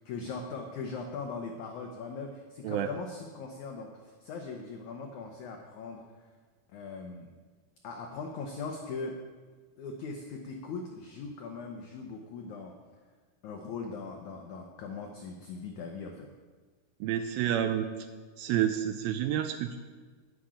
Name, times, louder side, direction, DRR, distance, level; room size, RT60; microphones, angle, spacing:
voice 1, 0.0-6.3 6.7-7.3 7.8-9.2 9.8-12.7 13.4-16.3, left 4 dB, 85° left, 3 dB, 1.7 m, -40 dB
voice 2, 17.0-17.9 18.4-19.8, right 10 dB, 80° right, 8 dB, 2.2 m, -29 dB
11.5 x 6.3 x 8.6 m, 1.4 s
omnidirectional pair, 4.6 m